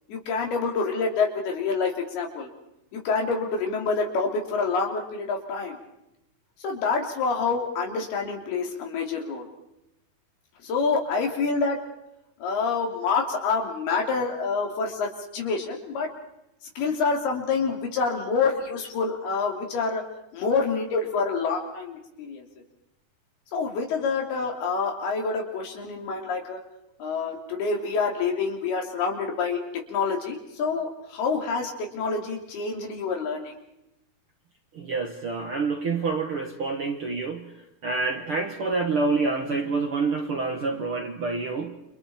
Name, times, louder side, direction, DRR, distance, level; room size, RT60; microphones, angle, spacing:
voice 1, 0.1-2.5 2.9-5.8 6.6-9.5 10.6-11.8 12.4-16.1 16.8-20.0 20.3-22.5 23.5-26.6 27.0-29.6 29.9-33.5, left 4 dB, 85° left, 2 dB, 5.0 m, -27 dB
voice 2, 34.7-41.8, right 4 dB, 55° right, 3 dB, 1.5 m, -27 dB
29.5 x 27.0 x 4.4 m, 0.86 s
omnidirectional pair, 4.4 m